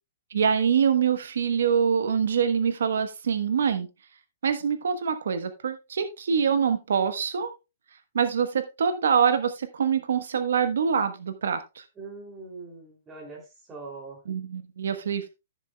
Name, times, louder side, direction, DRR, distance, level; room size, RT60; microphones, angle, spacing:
voice 1, 0.3-3.9 4.4-7.5 8.1-11.8 14.3-15.4, right 7 dB, 80° right, 9 dB, 1.2 m, -25 dB
voice 2, 12.0-14.2, right 3 dB, 10° right, -1 dB, 3.0 m, -42 dB
14.5 x 7.0 x 2.3 m, 0.26 s
hypercardioid pair, 175°, 0 cm